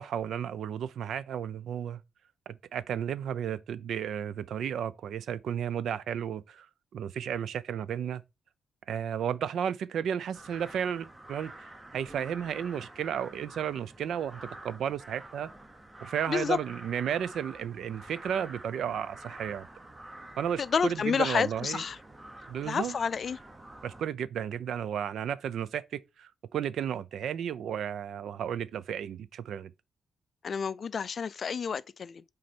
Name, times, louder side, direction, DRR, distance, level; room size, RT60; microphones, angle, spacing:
voice 1, 0.0-2.0 2.5-6.7 6.9-8.2 8.9-11.5 11.9-15.5 16.0-19.7 20.4-21.8 22.5-22.9 23.8-29.7, right 9 dB, 75° right, 0.5 m, -33 dB
sound 1, 10.3-24.1, right 1 dB, 15° right, 0.9 m, -48 dB
voice 2, 16.3-16.6 20.6-22.0 22.6-23.4 30.4-32.2, left 6 dB, 45° left, 0.3 m, -30 dB
6.2 x 4.0 x 4.4 m
cardioid pair, 130°, 0 cm